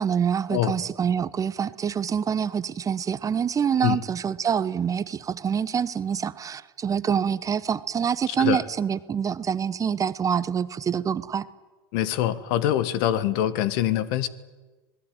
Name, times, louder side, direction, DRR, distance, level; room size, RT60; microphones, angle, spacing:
voice 1, 0.0-11.5, right 7 dB, 25° right, 15 dB, 1.0 m, -26 dB
voice 2, 8.3-8.6 11.9-14.3, left 12 dB, 60° left, 16 dB, 1.6 m, -24 dB
26.0 x 20.0 x 9.5 m, 1.3 s
hypercardioid pair, 90°, 13 cm